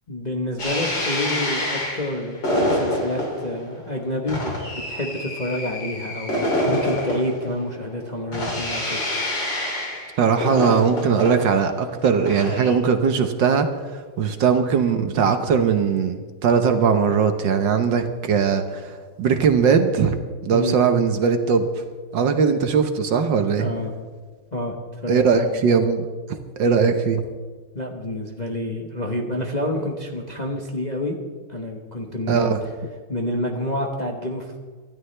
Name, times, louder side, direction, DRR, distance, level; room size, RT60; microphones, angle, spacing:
voice 1, 0.1-9.0 20.5-20.8 23.6-23.9 24.5-25.6 27.7-31.2 31.5-32.6 33.1-34.6, left 1 dB, 25° left, 1 dB, 1.0 m, -28 dB
sound 1, 0.6-12.7, left 1 dB, 60° left, 3.9 m, -27 dB
voice 2, 10.2-13.7 14.2-20.2 20.4-21.7 22.1-23.7 25.1-26.1 26.6-27.2 32.3-32.6, right 6 dB, 65° right, 7 dB, 1.5 m, -20 dB
25.0 x 13.0 x 3.3 m, 1.4 s
omnidirectional pair, 2.3 m